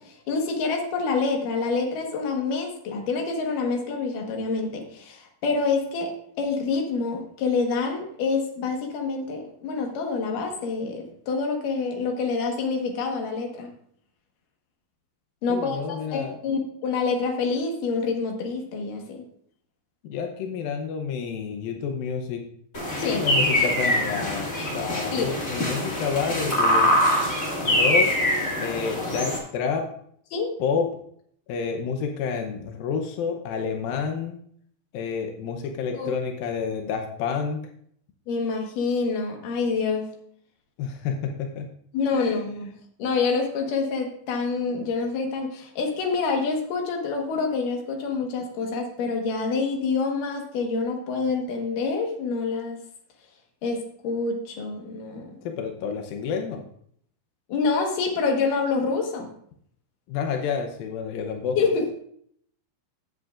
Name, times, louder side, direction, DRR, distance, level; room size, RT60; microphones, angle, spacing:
voice 1, 0.0-13.7 15.4-19.2 23.0-23.3 25.1-25.3 30.3-30.5 35.9-36.1 38.3-40.1 41.9-42.7 43.0-52.8 53.6-55.4 57.5-59.3 61.6-62.0, left 4 dB, 60° left, 2 dB, 2.5 m, -27 dB
voice 2, 15.5-16.4 20.0-22.4 23.0-26.9 27.6-28.1 28.6-29.8 30.6-30.9 31.5-34.4 34.9-37.6 40.8-41.7 42.1-42.4 55.4-56.6 60.1-61.6, left 6 dB, 85° left, 4 dB, 2.0 m, -29 dB
sound 1, 22.7-29.4, left 1 dB, 40° left, 1.1 m, -24 dB
15.5 x 7.9 x 2.5 m, 0.64 s
omnidirectional pair, 5.2 m